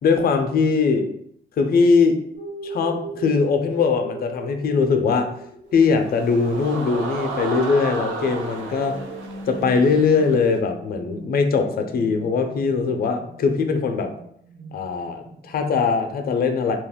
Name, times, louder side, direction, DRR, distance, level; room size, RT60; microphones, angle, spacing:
voice 1, 0.0-1.1 1.6-2.2 2.6-5.3 5.7-9.0 9.5-14.1 14.7-16.8, left 5 dB, 50° left, 6 dB, 0.5 m, -21 dB
sound 1, 2.3-15.5, right 2 dB, 40° right, 1.0 m, -39 dB
sound 2, 5.8-10.6, right 3 dB, 80° right, 0.5 m, -33 dB
2.3 x 2.1 x 3.5 m, 0.70 s
cardioid pair, 90°, 20 cm